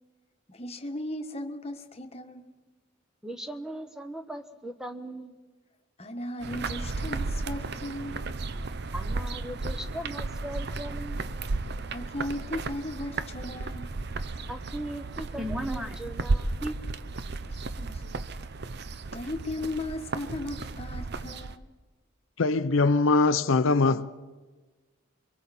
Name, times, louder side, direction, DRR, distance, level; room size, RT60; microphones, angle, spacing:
voice 1, 0.5-2.5 6.0-8.3 11.9-14.0 17.4-18.0 19.1-21.7, left 1 dB, 30° left, 1.3 m, -36 dB
voice 2, 3.2-5.4 8.9-11.2 14.5-16.8, right 1 dB, 5° right, 0.9 m, -38 dB
sound 1, 6.4-21.5, right 3 dB, 55° right, 0.7 m, -34 dB
voice 3, 22.4-24.1, left 3 dB, 75° left, 0.6 m, -22 dB
28.5 x 23.0 x 4.2 m
head